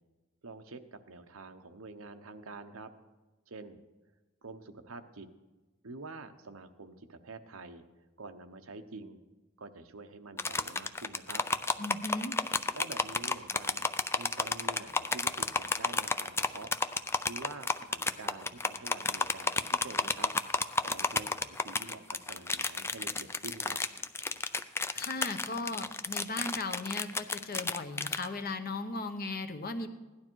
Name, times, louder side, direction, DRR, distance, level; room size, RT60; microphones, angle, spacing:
voice 1, 0.4-2.9 3.5-3.8 4.4-5.3 5.8-7.8 8.2-9.2 9.6-11.4 12.7-13.9 14.2-16.7 17.3-20.3 20.8-23.8, right 3 dB, 85° right, 8 dB, 1.0 m, -47 dB
sound 1, 10.4-28.3, left 3 dB, 10° left, 0.4 m, -31 dB
voice 2, 11.8-12.4 24.9-29.9, left 3 dB, 45° left, 8 dB, 1.0 m, -37 dB
17.0 x 11.5 x 4.6 m, 1.2 s
head